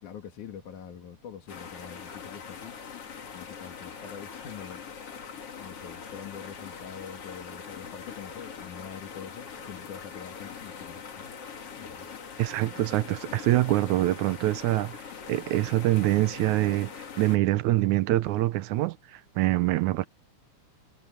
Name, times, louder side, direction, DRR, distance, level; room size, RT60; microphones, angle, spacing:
voice 1, 0.0-2.8 3.3-5.2 5.6-11.4 11.8-12.1, left 8 dB, 75° left, 3.5 m, -44 dB
sound 1, 1.5-17.4, left 6 dB, 50° left, 3.1 m, -42 dB
voice 2, 12.4-20.1, right 16 dB, 80° right, 2.1 m, -25 dB
omnidirectional pair, 3.5 m